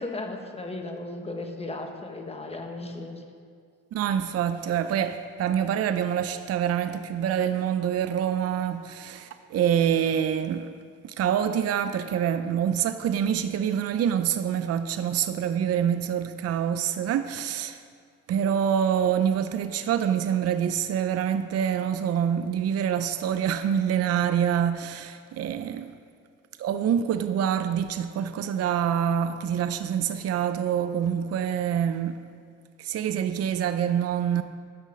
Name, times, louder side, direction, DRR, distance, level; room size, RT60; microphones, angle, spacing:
voice 1, 0.0-3.2, left 2 dB, 20° left, 1.3 m, -35 dB
voice 2, 3.9-10.7 11.0-17.8 18.3-25.9 26.6-32.2 32.8-34.4, right 9 dB, 55° right, 0.5 m, -26 dB
11.5 x 6.2 x 5.3 m
cardioid pair, 90°, 30 cm